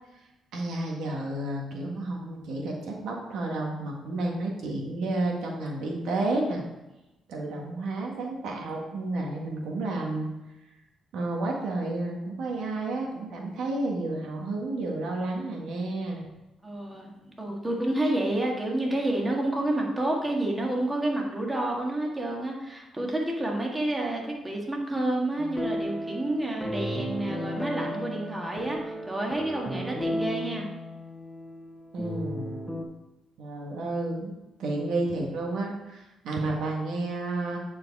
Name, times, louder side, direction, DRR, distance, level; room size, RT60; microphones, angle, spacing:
voice 1, 0.5-6.6 7.3-10.3 11.1-16.3 31.9-32.5 33.4-34.3 34.6-37.6, right 2 dB, 80° right, 0 dB, 1.7 m, -31 dB
voice 2, 16.6-30.7, right 1 dB, 15° right, -1 dB, 1.9 m, -29 dB
sound 1, 25.4-32.8, equal, 10° left, 1.3 m, -34 dB
9.7 x 4.8 x 4.8 m, 1.0 s
cardioid pair, 90°, 0 cm